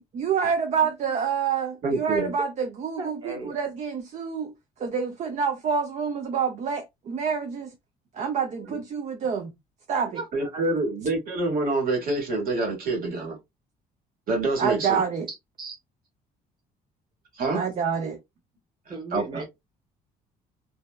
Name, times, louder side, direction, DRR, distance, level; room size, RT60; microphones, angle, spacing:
voice 1, 0.0-4.5 4.8-7.7 8.1-9.5 9.9-10.2 14.6-15.3 17.5-18.2, right 6 dB, 45° right, 0.5 m, -27 dB
voice 2, 1.8-2.3 10.3-13.4 14.3-15.0 17.4-17.7 19.1-19.4, right 2 dB, 60° right, 1.4 m, -26 dB
voice 3, 3.0-3.5 8.6-8.8 10.1-10.6 15.6-15.8 18.9-19.5, right 3 dB, 25° right, 0.9 m, -36 dB
2.6 x 2.1 x 2.2 m
cardioid pair, 110°, 17 cm